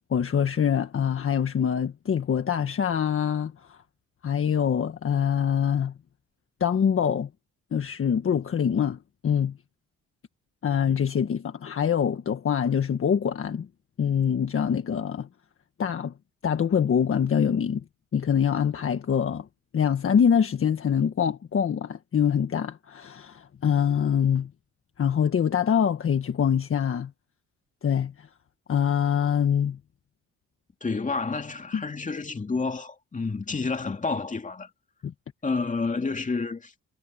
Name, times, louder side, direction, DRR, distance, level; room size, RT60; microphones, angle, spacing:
voice 1, 0.1-3.8 4.2-5.9 6.6-7.3 7.7-9.6 10.6-13.7 14.0-15.3 15.8-16.1 16.4-17.8 18.1-19.5 19.7-24.5 25.0-27.1 27.8-28.1 28.7-29.8 31.7-31.8 35.0-35.1, left 8 dB, 45° left, 1.5 m, -24 dB
voice 2, 30.8-34.7 35.4-36.7, left 4 dB, 25° left, 2.7 m, -29 dB
cardioid pair, 90°, 30 cm